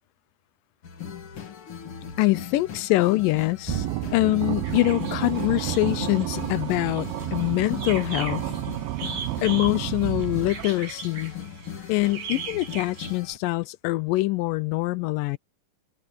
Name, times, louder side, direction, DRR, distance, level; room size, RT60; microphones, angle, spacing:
sound 1, 0.8-13.4, left 8 dB, 45° left, 2.1 m, -39 dB
voice 1, 2.2-3.9 4.1-8.5 9.4-11.3 11.9-15.4, left 19 dB, 80° left, 2.1 m, -24 dB
sound 2, 3.6-10.9, right 17 dB, 90° right, 2.6 m, -31 dB
sound 3, 4.6-13.2, right 5 dB, 70° right, 7.3 m, -40 dB
open air
omnidirectional pair, 4.1 m